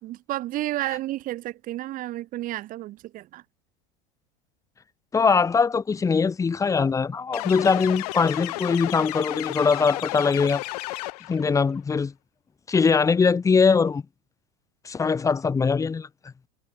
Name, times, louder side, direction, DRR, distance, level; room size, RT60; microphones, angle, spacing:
voice 1, 0.0-3.4, right 15 dB, 45° right, 5.7 m, -31 dB
voice 2, 5.1-10.6 11.3-12.1 12.7-14.0 14.8-16.1, left 5 dB, 15° left, 2.0 m, -21 dB
sound 1, 7.3-11.5, left 20 dB, 85° left, 1.1 m, -33 dB
supercardioid pair, 140°, 20 cm